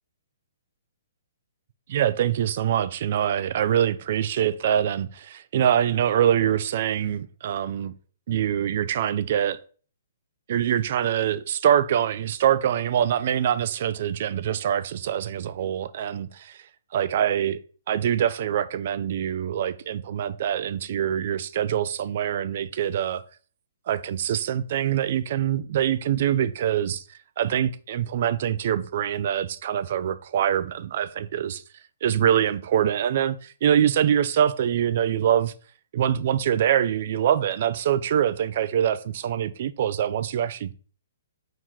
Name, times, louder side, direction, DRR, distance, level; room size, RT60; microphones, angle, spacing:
voice 1, 1.9-7.9 8.3-9.6 10.5-16.6 16.9-17.6 17.9-23.2 23.9-27.0 27.4-31.6 32.0-35.5 35.9-40.7, right 10 dB, 50° right, 0.3 m, -24 dB
4.5 x 3.0 x 3.7 m
hypercardioid pair, 155°, 0 cm